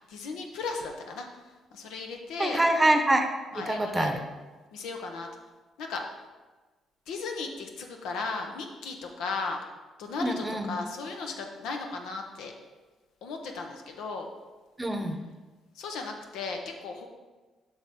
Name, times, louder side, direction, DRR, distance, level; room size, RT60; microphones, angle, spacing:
voice 1, 0.1-1.3 1.7-2.6 3.5-4.1 4.7-5.3 5.8-6.0 7.1-9.6 10.0-12.5 13.2-14.3 15.7-17.1, left 4 dB, 90° left, 3 dB, 0.9 m, -36 dB
voice 2, 2.4-3.3 3.5-4.2 10.2-10.7 14.8-15.2, right 1 dB, 15° right, 6 dB, 0.8 m, -25 dB
8.1 x 5.4 x 3.7 m, 1.3 s
cardioid pair, 90°, 0 cm